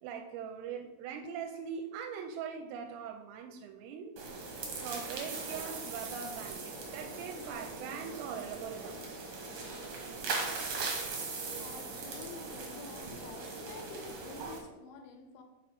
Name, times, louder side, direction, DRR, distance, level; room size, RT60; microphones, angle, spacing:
voice 1, 0.0-4.1 4.7-9.2, right 7 dB, 90° right, 3 dB, 3.3 m, -42 dB
sound 1, 4.2-14.6, right 3 dB, 70° right, 1.9 m, -40 dB
voice 2, 11.5-15.4, left 5 dB, 80° left, 5 dB, 2.8 m, -49 dB
6.9 x 5.3 x 5.2 m, 1.1 s
omnidirectional pair, 5.8 m